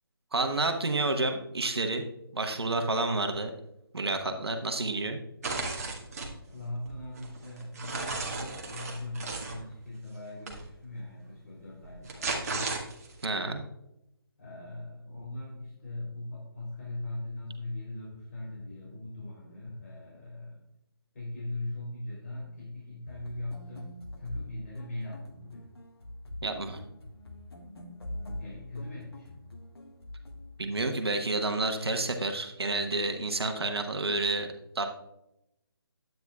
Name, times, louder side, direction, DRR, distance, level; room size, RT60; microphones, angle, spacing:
voice 1, 0.3-2.0 2.3-3.5 3.9-5.2 13.2-13.6 26.4-26.8 30.6-34.5 34.7-34.9, right 2 dB, 90° right, 6 dB, 1.1 m, -29 dB
sound 1, 5.4-6.3 6.9-9.6 10.5-10.6 11.8-13.2, right 3 dB, 40° right, 1.6 m, -35 dB
voice 2, 6.4-12.7 14.4-20.6 21.1-25.6 28.4-29.4, left 2 dB, 40° left, -5 dB, 3.1 m, -40 dB
sound 2, 23.1-30.9, left 1 dB, 85° left, 1.6 m, -44 dB
11.0 x 9.1 x 2.3 m, 0.85 s
figure-of-eight pair, 165°, 13 cm